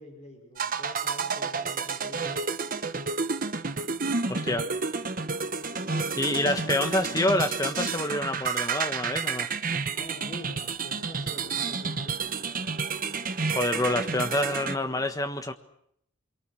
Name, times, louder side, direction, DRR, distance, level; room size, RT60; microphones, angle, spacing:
voice 1, 0.0-2.5 5.9-7.6 9.8-12.4 13.8-15.1, equal, 35° left, 1 dB, 5.2 m, -45 dB
sound 1, 0.6-14.8, right 4 dB, 40° right, 1.1 m, -30 dB
voice 2, 4.3-4.7 6.2-9.5 13.5-15.5, left 1 dB, 15° left, 7 dB, 1.5 m, -27 dB
26.0 x 23.0 x 6.4 m, 0.71 s
head